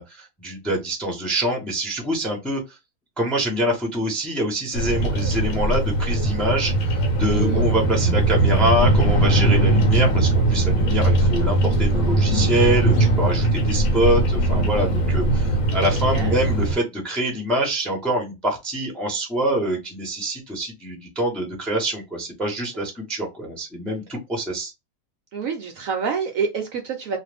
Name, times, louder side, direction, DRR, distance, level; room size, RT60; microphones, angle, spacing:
voice 1, 0.0-2.8 3.2-24.7, right 1 dB, ahead, 0.7 m, -25 dB
Bird vocalization bird call bird song, 4.7-16.8, right 2 dB, 60° left, 1.2 m, -20 dB
voice 2, 7.2-7.7 15.8-16.4 25.3-27.2, right 6 dB, 70° right, 0.9 m, -28 dB
2.5 x 2.5 x 3.3 m
omnidirectional pair, 1.8 m